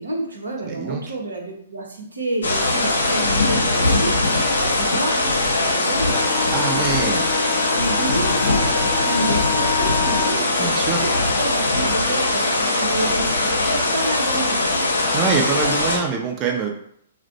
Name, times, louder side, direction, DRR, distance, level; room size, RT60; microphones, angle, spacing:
voice 1, 0.0-6.2 6.4-7.1 7.5-14.8, right 2 dB, 85° right, 0 dB, 0.8 m, -30 dB
voice 2, 0.6-1.0 6.5-7.3 10.6-11.0 15.1-16.7, right 5 dB, 30° right, 1 dB, 0.4 m, -24 dB
sound 1, 2.4-16.0, left 2 dB, 80° left, 0.6 m, -20 dB
Wind instrument woodwind instrument, 6.0-10.4, left 10 dB, 35° left, 0.3 m, -29 dB
2.5 x 2.1 x 3.9 m, 0.68 s
figure-of-eight pair, 120°, 0 cm